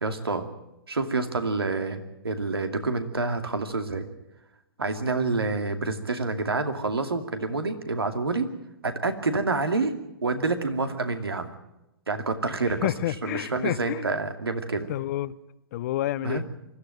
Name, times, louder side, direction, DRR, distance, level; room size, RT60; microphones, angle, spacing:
voice 1, 0.0-0.5 0.9-4.1 4.8-8.5 8.8-9.9 10.2-11.5 12.1-12.9 13.2-14.9 16.2-16.4, right 3 dB, 85° right, 2.5 m, -28 dB
voice 2, 12.8-14.2 14.9-15.4 15.7-16.4, left 14 dB, 45° left, 0.8 m, -29 dB
24.0 x 13.0 x 9.2 m
hypercardioid pair, 125°, 12 cm